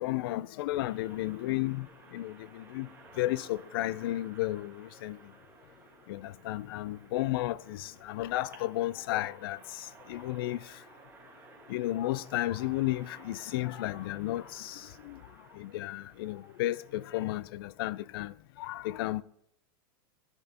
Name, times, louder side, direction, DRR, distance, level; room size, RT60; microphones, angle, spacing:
voice 1, 0.0-1.9 2.1-2.9 3.2-5.2 6.1-9.6 10.1-10.6 11.7-14.8 15.1-15.2 15.6-18.3 18.6-19.2, left 16 dB, 65° left, 0.4 m, -33 dB
sound 1, 0.8-17.4, right 3 dB, 15° right, 1.6 m, -56 dB
10.5 x 8.9 x 2.9 m
supercardioid pair, 140°, 13 cm